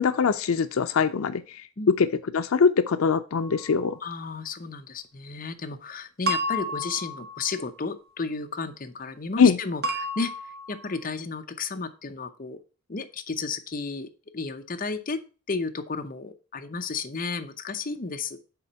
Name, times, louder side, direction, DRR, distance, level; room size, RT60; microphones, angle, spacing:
voice 1, 0.0-1.6 2.0-2.1 2.3-4.0 9.4-9.6, left 6 dB, 85° left, 12 dB, 0.5 m, -22 dB
sound 1, 3.3-3.8 6.3-7.9 9.8-11.0, equal, 50° right, 1.3 m, -31 dB
voice 2, 4.0-12.6 12.9-15.2 15.5-18.4, left 4 dB, 40° left, 6 dB, 0.7 m, -33 dB
7.0 x 4.2 x 5.6 m, 0.34 s
head